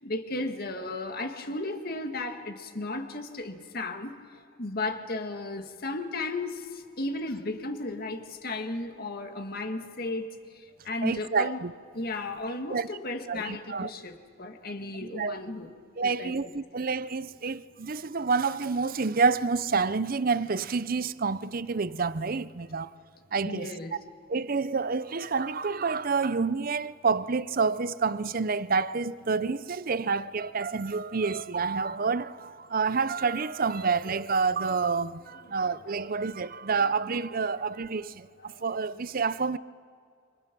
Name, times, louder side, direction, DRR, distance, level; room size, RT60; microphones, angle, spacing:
voice 1, 0.0-4.1 4.6-6.6 7.0-10.3 10.9-11.6 11.9-15.7 16.0-16.3 23.4-23.9 38.5-38.6, left 2 dB, 50° left, 1.8 m, -34 dB
voice 2, 11.0-11.7 12.7-12.9 13.3-13.9 15.0-15.4 16.0-22.9 23.3-23.7 24.3-39.6, right 4 dB, 45° right, 0.6 m, -28 dB
29.5 x 26.0 x 6.1 m
head